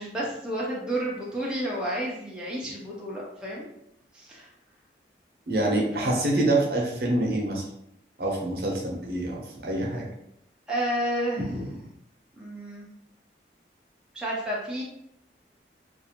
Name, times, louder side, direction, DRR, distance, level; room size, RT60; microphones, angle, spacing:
voice 1, 0.0-3.7 4.1-4.5 6.0-6.2 10.7-11.8 12.4-12.9 14.1-14.8, right 1 dB, 5° right, -6 dB, 0.5 m, -31 dB
voice 2, 5.5-7.6 8.2-10.0, right 1 dB, 60° right, -2 dB, 0.7 m, -26 dB
2.5 x 2.4 x 2.8 m, 0.78 s
head